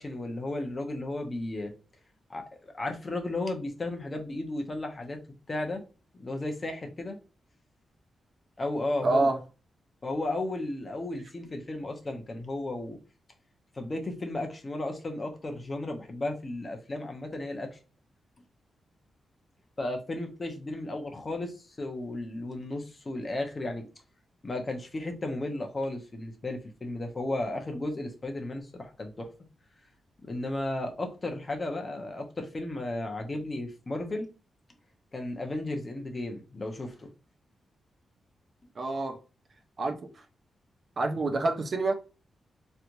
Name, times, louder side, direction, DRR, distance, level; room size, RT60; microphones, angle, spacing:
voice 1, 0.0-1.7 2.3-2.4 2.7-5.2 5.5-5.8 6.1-7.2 8.6-9.3 10.0-13.0 13.7-17.8 19.8-23.9 24.4-29.3 30.2-34.3 35.1-37.1, left 2 dB, 30° left, 0.9 m, -34 dB
voice 2, 9.0-9.4 38.8-39.2 39.8-40.2 41.0-41.9, right 2 dB, 45° right, 0.6 m, -27 dB
3.3 x 2.9 x 2.5 m
cardioid pair, 110°, 0 cm